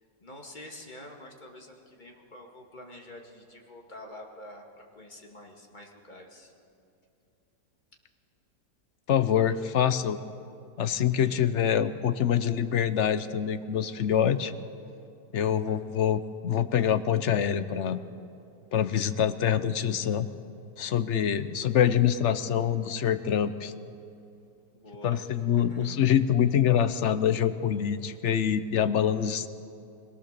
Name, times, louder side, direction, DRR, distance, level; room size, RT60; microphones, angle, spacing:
voice 1, 0.0-6.5 11.1-11.5 15.7-15.8 24.7-25.9 29.1-29.3, left 1 dB, 25° left, 0 dB, 2.3 m, -48 dB
voice 2, 9.1-10.2 10.8-14.5 15.3-18.0 18.7-20.3 20.8-23.7 25.0-29.5, left 9 dB, 55° left, 11 dB, 0.8 m, -25 dB
25.5 x 18.0 x 6.8 m, 2.6 s
omnidirectional pair, 1.8 m